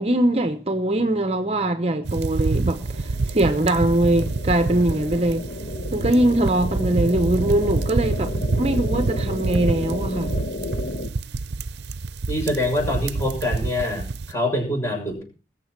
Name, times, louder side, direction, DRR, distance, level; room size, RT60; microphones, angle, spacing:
voice 1, 0.0-5.5 5.9-10.4, right 1 dB, 35° right, 0.9 m, -22 dB
sound 1, 2.0-14.3, right 3 dB, 70° right, 0.6 m, -27 dB
sound 2, 2.8-11.1, left 2 dB, 55° left, 1.2 m, -34 dB
voice 2, 12.3-15.2, left 1 dB, 15° left, 6.5 m, -25 dB
21.0 x 7.4 x 6.0 m
head